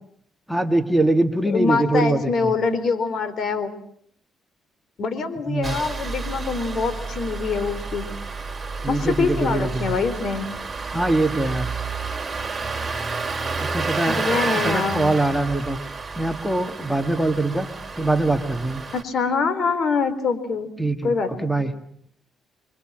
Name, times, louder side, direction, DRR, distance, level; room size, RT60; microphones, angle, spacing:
voice 1, 0.5-2.5 5.5-5.8 8.8-10.0 10.9-11.7 13.6-14.2 14.6-15.8 16.2-17.7 18.0-18.8 20.8-21.1 21.4-21.7, right 2 dB, ahead, 6 dB, 2.1 m, -22 dB
voice 2, 1.4-3.7 5.0-8.0 8.9-10.5 14.1-15.2 18.9-20.7 21.0-21.5, left 5 dB, 55° left, 12 dB, 4.1 m, -24 dB
Engine starting, 5.6-19.0, right 4 dB, 25° right, 4.1 m, -30 dB
27.5 x 24.5 x 7.6 m, 0.67 s
cardioid pair, 90°, 0 cm